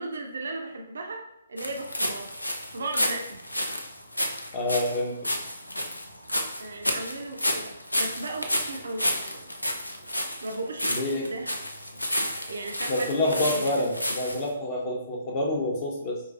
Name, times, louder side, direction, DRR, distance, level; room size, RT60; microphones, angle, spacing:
voice 1, 0.0-2.4 2.7-3.4 6.6-9.5 10.4-11.5 12.4-13.9, right 2 dB, 60° right, 3 dB, 0.5 m, -36 dB
sound 1, 1.6-14.5, left 1 dB, 85° left, 0.5 m, -31 dB
voice 2, 4.5-5.3 10.9-11.3 12.9-16.2, left 1 dB, 35° left, -1 dB, 0.7 m, -27 dB
4.7 x 3.1 x 2.4 m, 0.80 s
figure-of-eight pair, 130°, 0 cm